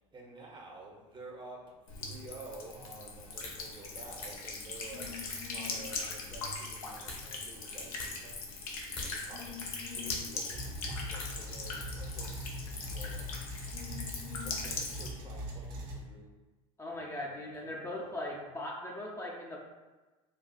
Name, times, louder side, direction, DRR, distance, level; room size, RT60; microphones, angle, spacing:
voice 1, 0.1-1.7 2.0-5.1 5.5-8.5 9.0-13.3 14.4-16.4 16.9-18.0, right 2 dB, 25° right, -1 dB, 0.8 m, -50 dB
Buzz / Water tap faucet / Trickle dribble, 1.9-15.1, left 3 dB, 85° left, 0.6 m, -40 dB
sound 1, 3.3-12.0, left 2 dB, 60° left, 1.3 m, -49 dB
sound 2, 10.5-16.0, equal, 60° right, 0.7 m, -41 dB
voice 2, 16.8-19.6, left 1 dB, 15° left, -3 dB, 0.5 m, -39 dB
4.0 x 2.3 x 2.3 m, 1.2 s
hypercardioid pair, 85°, 18 cm